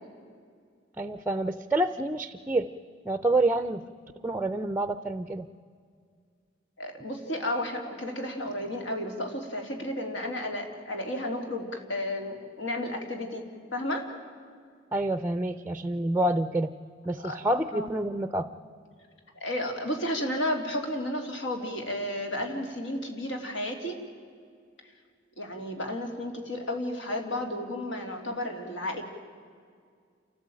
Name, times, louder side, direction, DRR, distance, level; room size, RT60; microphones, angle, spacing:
voice 1, 1.0-2.7 3.0-3.8 4.2-5.5 14.9-16.7 17.0-18.5, right 1 dB, 10° right, 11 dB, 0.6 m, -27 dB
voice 2, 6.8-13.4 13.7-14.1 17.2-17.4 17.7-17.9 19.3-24.0 25.4-29.0, left 1 dB, 70° left, 3 dB, 3.4 m, -32 dB
29.0 x 14.5 x 8.9 m, 2.1 s
head